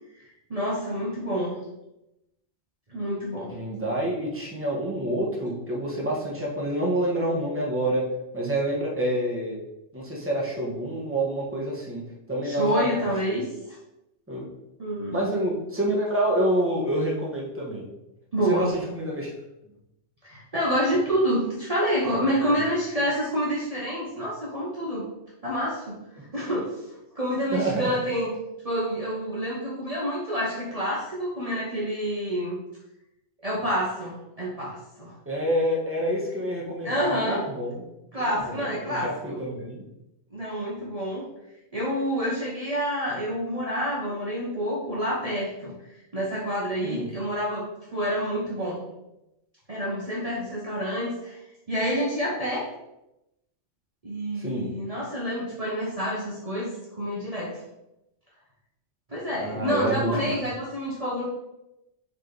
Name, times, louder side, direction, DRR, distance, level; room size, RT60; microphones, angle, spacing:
voice 1, 0.1-1.5 2.9-3.6 12.4-13.4 14.8-15.2 18.3-18.7 20.2-25.0 25.4-28.3 28.6-32.6 33.4-35.1 36.8-37.4 38.1-39.4 40.3-41.2 41.7-45.7 46.1-47.7 47.9-48.8 49.7-51.4 51.7-52.6 54.0-57.6 59.1-61.3, equal, 35° right, -6 dB, 1.2 m, -28 dB
voice 2, 3.5-8.0 8.3-9.6 9.9-12.0 12.3-13.0 14.3-14.5 15.1-17.9 18.5-19.3 22.4-22.5 27.5-27.9 35.2-37.8 38.2-39.8 46.8-47.1 54.3-54.7 59.3-60.4, right 1 dB, 10° right, -4 dB, 1.5 m, -27 dB
7.4 x 3.6 x 4.1 m, 0.90 s
omnidirectional pair, 1.1 m